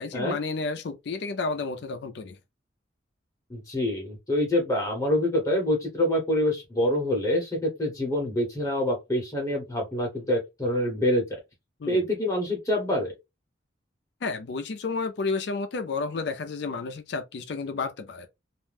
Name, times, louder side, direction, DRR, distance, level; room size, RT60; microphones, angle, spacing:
voice 1, 0.0-2.4 11.8-12.0 14.2-18.3, left 4 dB, 60° left, 0.4 m, -31 dB
voice 2, 3.5-11.2 11.9-13.1, left 1 dB, 15° left, 0.9 m, -26 dB
2.5 x 2.1 x 3.3 m
head